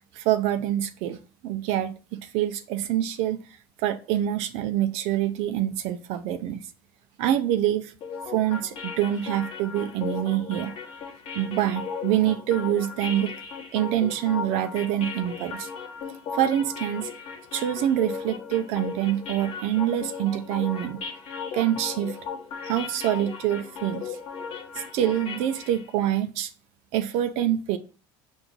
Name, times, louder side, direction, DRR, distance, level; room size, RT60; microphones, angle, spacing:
voice 1, 0.1-3.4 3.8-6.6 7.2-7.9 8.3-10.8 11.3-13.3 13.7-15.7 16.3-17.1 17.5-21.1 21.5-22.2 22.6-24.2 24.7-26.5 26.9-27.8, right 12 dB, 65° right, 0.4 m, -26 dB
sound 1, 8.0-25.9, left 6 dB, 55° left, 1.0 m, -37 dB
4.5 x 2.6 x 3.7 m
supercardioid pair, 100°, 11 cm